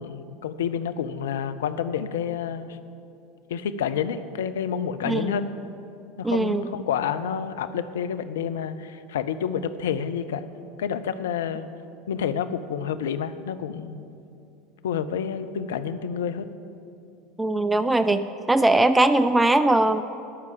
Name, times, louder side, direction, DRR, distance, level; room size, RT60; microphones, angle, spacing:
voice 1, 0.0-2.8 3.5-5.5 6.2-10.5 10.8-11.7 12.1-14.1 14.8-16.5, left 8 dB, 65° left, 11 dB, 0.4 m, -29 dB
voice 2, 6.2-6.7 17.4-18.2 18.5-20.0, right 2 dB, 10° right, 11 dB, 0.3 m, -20 dB
12.5 x 4.7 x 7.7 m, 2.6 s
figure-of-eight pair, 75°, 0 cm